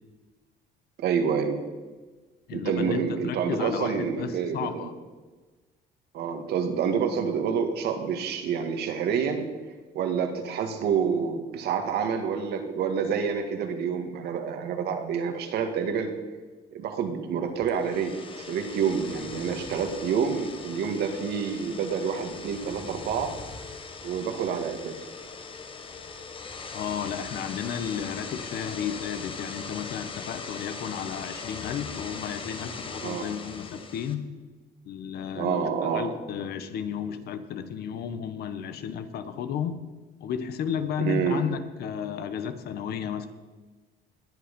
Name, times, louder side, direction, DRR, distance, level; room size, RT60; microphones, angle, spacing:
voice 1, 1.0-1.6 2.5-4.9 6.1-9.5 9.9-16.1 16.7-23.3 24.0-25.0 33.0-33.3 35.3-36.1 41.0-41.4, right 6 dB, 75° right, 6 dB, 1.9 m, -28 dB
voice 2, 2.5-4.9 26.7-34.2 34.8-39.8 40.2-43.3, left 8 dB, 70° left, 10 dB, 1.3 m, -33 dB
sound 1, 17.6-34.1, left 4 dB, 30° left, 1.4 m, -40 dB
20.0 x 8.0 x 5.4 m, 1.3 s
cardioid pair, 110°, 17 cm